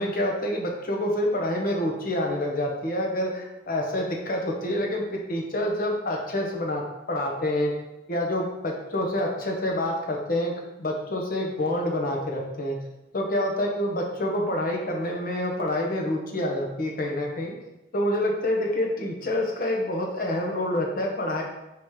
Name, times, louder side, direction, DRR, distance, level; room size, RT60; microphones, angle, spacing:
voice 1, 0.0-7.7 8.1-10.5 10.8-12.8 13.1-17.5 17.9-21.4, left 1 dB, 50° left, 0 dB, 0.8 m, -27 dB
4.8 x 2.9 x 3.6 m, 0.94 s
head